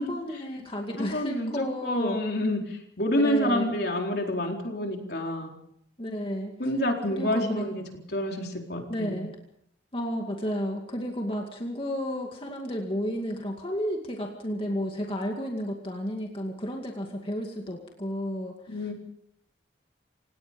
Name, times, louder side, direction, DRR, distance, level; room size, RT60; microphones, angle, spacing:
voice 1, 0.0-2.2 3.1-3.8 6.0-6.6 7.1-7.7 8.9-9.3 9.9-18.9, equal, 30° left, 1 dB, 2.3 m, -32 dB
voice 2, 1.0-5.6 6.6-7.8 8.1-9.2 18.7-18.9, left 1 dB, 60° left, 2 dB, 4.2 m, -28 dB
28.0 x 18.5 x 5.4 m, 0.73 s
head